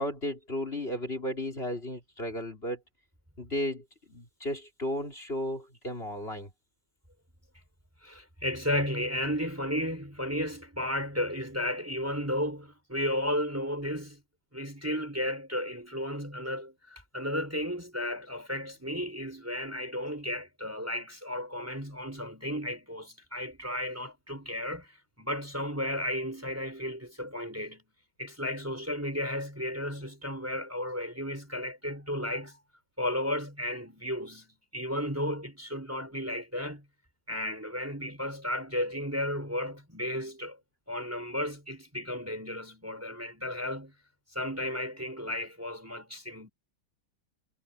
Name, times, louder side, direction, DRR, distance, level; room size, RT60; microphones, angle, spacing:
voice 1, 0.0-2.8 3.4-6.5, left 1 dB, 35° left, 4.5 m, -34 dB
voice 2, 8.0-14.2 14.5-27.9 28.2-32.6 33.0-36.8 37.3-40.6 40.9-43.9 44.3-46.5, left 1 dB, 10° right, 4.4 m, -34 dB
omnidirectional pair, 1.8 m